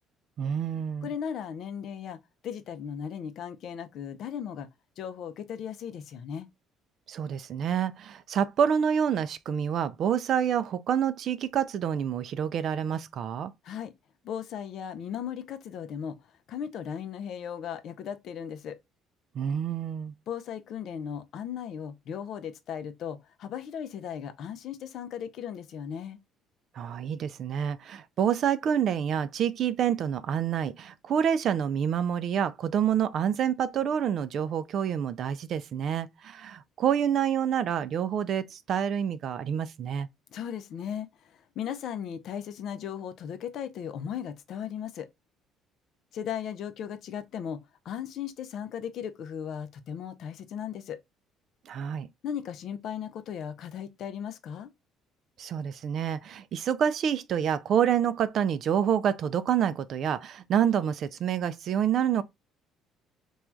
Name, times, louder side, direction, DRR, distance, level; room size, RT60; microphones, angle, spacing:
voice 1, 0.4-1.1 7.1-13.5 19.3-20.1 26.8-40.1 51.7-52.1 55.4-62.2, right 8 dB, 60° right, 0.3 m, -27 dB
voice 2, 1.0-4.7 5.0-6.5 13.6-13.9 14.2-16.2 16.5-18.8 20.3-26.2 40.3-45.1 46.1-47.6 47.9-51.0 52.2-54.7, left 8 dB, 65° left, 0.4 m, -37 dB
3.0 x 2.3 x 2.2 m
hypercardioid pair, 65°, 0 cm